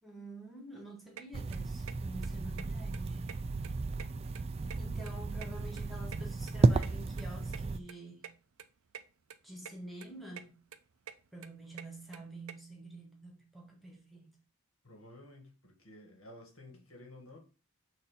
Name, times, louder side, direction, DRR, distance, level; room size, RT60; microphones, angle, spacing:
voice 1, 0.0-3.2 4.7-8.3 9.4-10.6 11.3-14.3, right 1 dB, ahead, 1.3 m, -48 dB
sound 1, 1.2-1.3 1.5-1.9 2.2-2.3 2.6-2.7 2.9-3.7 3.9-5.1 5.4-6.9 7.2-7.3 7.5-7.6 7.9-8.0 8.2-8.3 8.6-9.0 9.3-9.7 10.0-10.5 10.7-12.5, right 8 dB, 80° right, 0.5 m, -47 dB
sound 2, 1.3-7.8, right 3 dB, 30° right, 0.3 m, -33 dB
voice 2, 14.8-17.4, left 1 dB, 75° left, 1.9 m, -53 dB
6.6 x 2.8 x 5.5 m
head